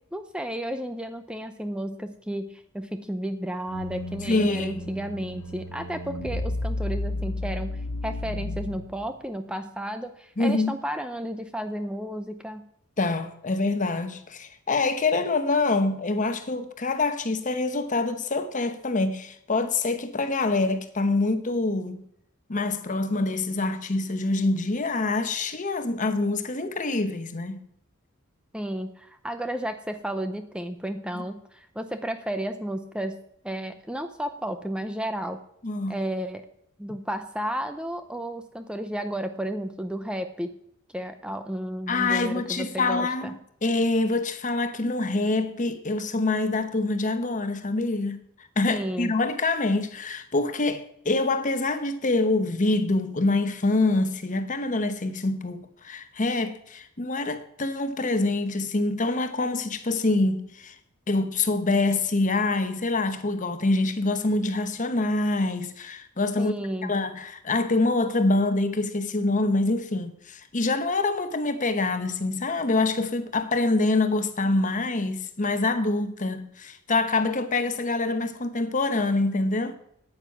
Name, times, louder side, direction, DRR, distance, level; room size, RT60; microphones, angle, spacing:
voice 1, 0.1-12.6 28.5-33.2 33.4-35.4 35.9-36.4 36.8-40.5 40.9-43.3 48.7-49.1 66.4-66.9, right 1 dB, 5° right, 0.6 m, -32 dB
sound 1, 3.7-9.1, left 2 dB, 85° left, 1.4 m, -33 dB
voice 2, 4.3-4.8 10.4-10.8 13.0-22.0 22.5-27.6 31.1-31.2 35.6-36.0 41.9-48.2 48.6-60.7 61.1-66.5 66.8-79.8, left 2 dB, 35° left, 1.0 m, -25 dB
9.5 x 8.9 x 7.2 m
head